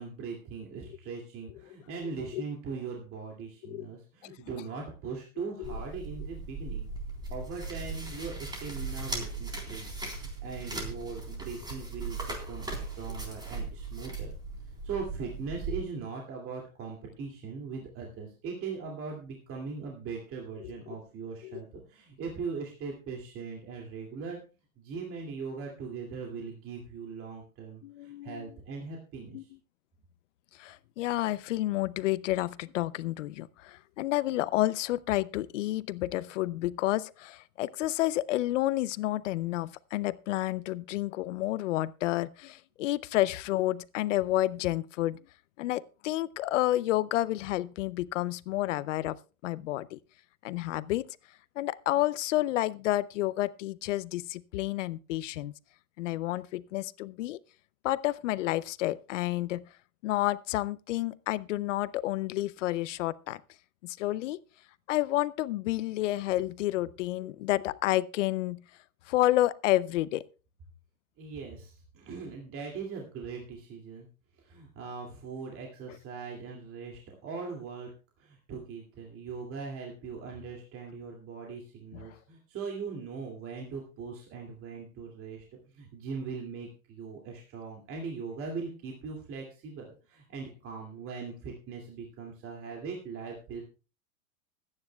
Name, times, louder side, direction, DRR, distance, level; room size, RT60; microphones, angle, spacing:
voice 1, 0.0-6.9 7.3-14.3 14.8-24.4 24.8-29.5 71.2-74.1 74.4-77.9 78.2-93.6, right 5 dB, 30° right, 2.5 m, -40 dB
sound 1, 5.6-15.8, right 3 dB, 10° right, 3.7 m, -38 dB
voice 2, 27.8-28.5 29.3-29.4 30.5-45.2 45.6-49.2 49.4-50.0 50.4-51.1 51.6-55.5 56.0-57.4 57.8-59.6 60.0-63.4 63.8-64.4 64.9-68.6 69.1-70.2 81.9-82.0, left 16 dB, 60° left, 0.6 m, -30 dB
25.0 x 9.8 x 2.3 m
hypercardioid pair, 115°, 42 cm